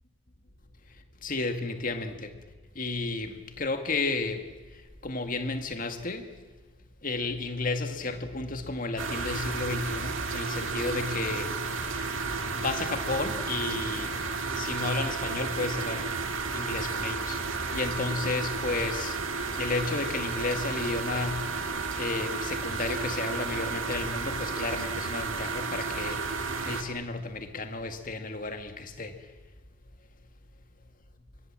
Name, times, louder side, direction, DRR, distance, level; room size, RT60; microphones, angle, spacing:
voice 1, 1.2-2.4 2.8-4.4 5.0-6.3 7.0-11.6 12.5-14.2 14.5-16.1 16.5-17.4 17.7-19.2 19.6-21.5 22.0-26.2 26.6-29.2, left 3 dB, 40° left, 7 dB, 1.9 m, -32 dB
sound 1, 9.0-26.8, right 4 dB, 70° right, 2.2 m, -32 dB
24.5 x 21.0 x 7.5 m, 1.3 s
head